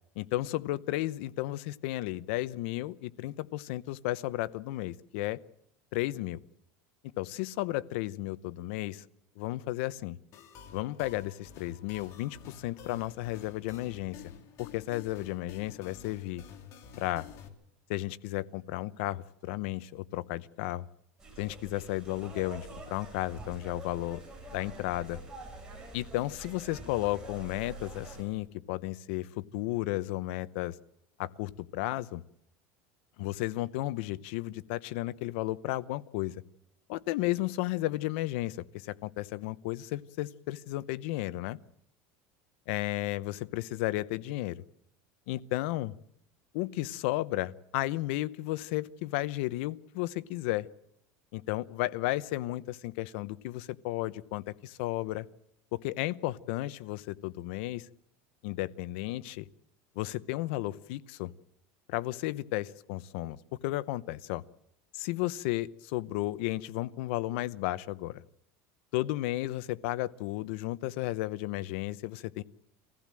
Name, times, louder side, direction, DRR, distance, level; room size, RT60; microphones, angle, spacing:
voice 1, 0.2-5.4 5.9-6.4 7.2-9.1 9.4-10.2 10.7-14.3 14.6-16.4 17.0-17.3 17.9-20.9 21.4-24.2 24.5-25.2 25.9-30.8 31.2-32.2 33.2-36.4 36.9-41.6 42.7-44.6 45.3-45.9 46.5-50.7 51.3-55.3 55.7-57.9 58.4-59.5 59.9-61.3 61.9-63.4 63.6-64.4 64.9-68.2 68.9-72.4, left 17 dB, 75° left, 16 dB, 0.8 m, -33 dB
sound 1, 10.3-17.5, left 7 dB, 50° left, 2.7 m, -50 dB
sound 2, 21.2-28.2, right 2 dB, 10° right, 7.6 m, -46 dB
24.5 x 15.5 x 7.6 m, 0.79 s
supercardioid pair, 140°, 7 cm